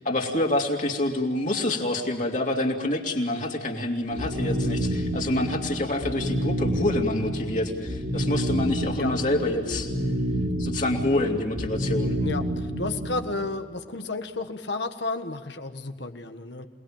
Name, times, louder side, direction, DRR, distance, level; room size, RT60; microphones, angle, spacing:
voice 1, 0.0-9.9 10.6-12.1, left 1 dB, 40° left, 0 dB, 3.0 m, -27 dB
sound 1, 4.1-13.3, right 1 dB, 70° right, 4.4 m, -29 dB
voice 2, 12.2-16.7, left 3 dB, 65° left, 7 dB, 1.6 m, -32 dB
28.5 x 20.0 x 8.9 m, 1.5 s
head